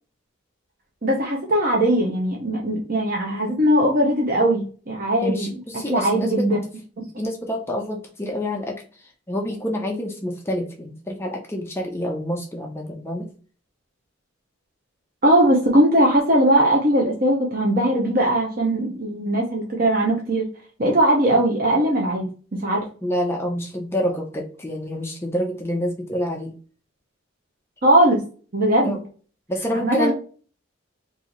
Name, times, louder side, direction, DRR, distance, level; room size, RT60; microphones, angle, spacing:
voice 1, 1.0-5.6 5.9-6.6 7.0-7.1 15.2-20.5 20.8-22.3 22.6-22.8 27.8-28.2 28.5-28.9 29.8-30.1, right 1 dB, 45° right, -1 dB, 0.8 m, -19 dB
voice 2, 5.2-6.5 7.2-8.8 9.3-13.3 23.0-26.5 28.8-29.0 29.5-30.1, equal, 10° left, 1 dB, 0.5 m, -27 dB
3.9 x 2.7 x 2.9 m, 0.39 s
head